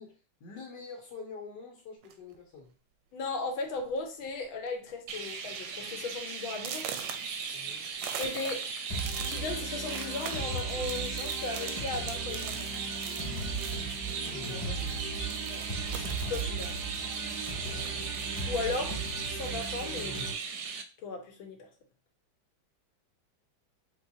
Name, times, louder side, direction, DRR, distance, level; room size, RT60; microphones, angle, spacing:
voice 1, 0.0-2.7 7.5-7.8 14.1-15.1 17.7-18.1, left 4 dB, 65° left, 1.4 m, -47 dB
sound 1, 2.0-2.4 3.2-3.3 3.7-3.9 4.2-4.7 5.1-5.2 5.7-5.8 6.5-14.6 14.9-18.6 19.0-20.0, right 8 dB, 90° right, 1.4 m, -44 dB
voice 2, 3.1-6.9 8.2-8.7 9.3-12.7 15.4-16.7 18.5-19.0 19.3-20.2 21.0-21.7, left 3 dB, 80° left, 1.6 m, -36 dB
Chirp tweet, 5.1-20.8, right 5 dB, 70° right, 1.0 m, -37 dB
sound 2, 8.9-20.3, right 3 dB, 30° left, 1.6 m, -37 dB
4.6 x 3.1 x 2.7 m
omnidirectional pair, 2.2 m